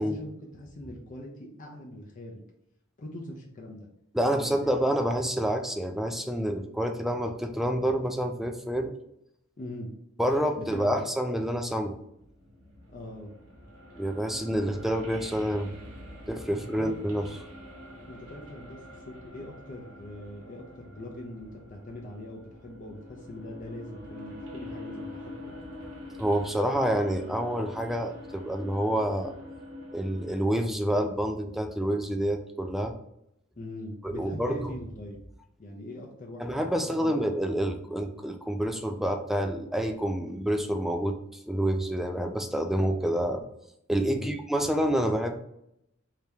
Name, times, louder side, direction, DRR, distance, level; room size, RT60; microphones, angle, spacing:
voice 1, 0.0-2.4 3.0-3.9 4.3-4.7 9.6-9.9 10.6-11.0 12.9-13.3 16.5-16.9 18.1-25.2 33.6-35.2 35.6-36.4 37.0-37.1 44.0-44.4, left 1 dB, 40° left, 0 dB, 0.6 m, -42 dB
voice 2, 4.1-8.9 10.2-12.0 14.0-15.7 16.3-17.3 26.2-29.3 29.9-32.9 34.0-34.7 36.4-41.2 41.5-43.4 43.9-45.4, equal, ahead, 5 dB, 0.3 m, -28 dB
sound 1, 12.0-30.5, left 1 dB, 80° right, 1.1 m, -45 dB
3.4 x 2.8 x 3.4 m, 0.79 s
head